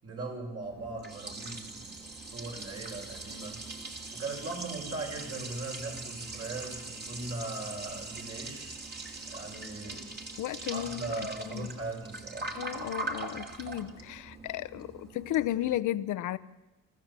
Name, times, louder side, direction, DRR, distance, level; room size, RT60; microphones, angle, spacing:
voice 1, 0.0-3.6 4.1-8.8 9.3-10.2 10.7-12.6, right 2 dB, 50° right, 7.1 m, -39 dB
Liquid, 0.6-15.8, right 3 dB, 35° right, 3.0 m, -42 dB
voice 2, 10.4-11.1 11.5-11.7 12.5-16.4, left 13 dB, 80° left, 0.8 m, -33 dB
25.0 x 15.0 x 7.5 m
cardioid pair, 90°, 30 cm